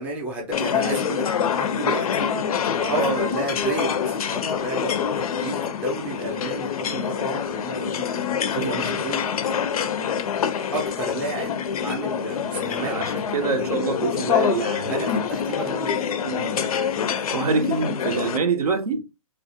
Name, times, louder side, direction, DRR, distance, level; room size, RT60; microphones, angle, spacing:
voice 1, 0.0-2.3 2.9-8.1 8.5-9.2 10.7-13.0 13.6-13.7 14.8-16.1, right 2 dB, 5° right, 0.4 m, -31 dB
sound 1, 0.5-18.4, left 7 dB, 70° left, 0.4 m, -26 dB
voice 2, 2.8-3.2 8.6-8.9 12.8-15.2 16.2-16.6 17.3-19.0, right 4 dB, 85° right, 0.6 m, -26 dB
2.3 x 2.0 x 2.6 m
hypercardioid pair, 145°, 19 cm